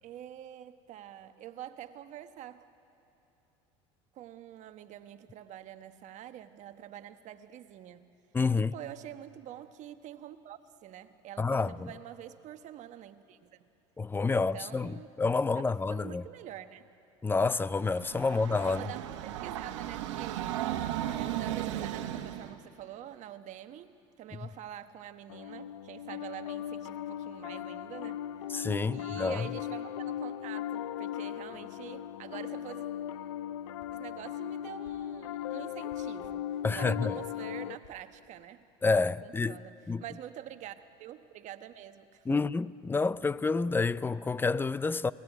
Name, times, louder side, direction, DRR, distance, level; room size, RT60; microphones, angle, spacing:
voice 1, 0.0-2.7 4.1-8.1 8.6-13.7 14.3-15.1 15.5-16.9 18.2-18.4 18.7-19.0 19.3-20.6 21.0-32.9 33.9-38.6 39.2-40.7 41.0-42.5, right 11 dB, 55° right, 1.2 m, -46 dB
voice 2, 8.3-8.7 11.4-11.9 14.0-14.9 15.2-16.2 17.2-18.9 28.5-29.5 36.6-37.1 38.8-39.6 39.9-40.0 42.3-45.1, left 4 dB, 15° left, 0.5 m, -28 dB
Train, 17.6-22.5, right 12 dB, 85° right, 1.3 m, -35 dB
Piano, 25.3-37.8, left 11 dB, 85° left, 0.6 m, -38 dB
sound 1, 33.8-34.0 34.8-35.0 35.9-36.4 36.7-36.9 37.3-37.4 37.8-38.0, left 6 dB, 70° left, 4.2 m, -59 dB
28.0 x 19.0 x 9.2 m
supercardioid pair, 95°, 15 cm